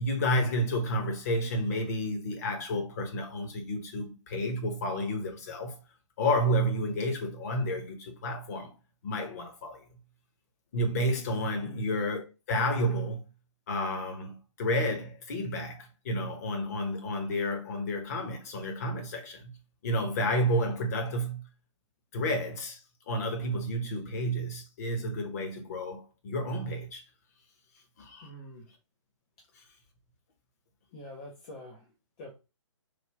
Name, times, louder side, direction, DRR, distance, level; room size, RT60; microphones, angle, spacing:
voice 1, 0.0-5.8 6.2-8.7 9.0-9.8 10.7-13.2 13.7-19.6 19.8-21.5 22.1-22.8 23.1-27.0 28.0-28.3, equal, 30° left, 0.8 m, -31 dB
voice 2, 28.2-28.7 30.9-32.3, left 1 dB, 15° left, 0.3 m, -46 dB
3.3 x 2.2 x 3.3 m
figure-of-eight pair, 135°, 16 cm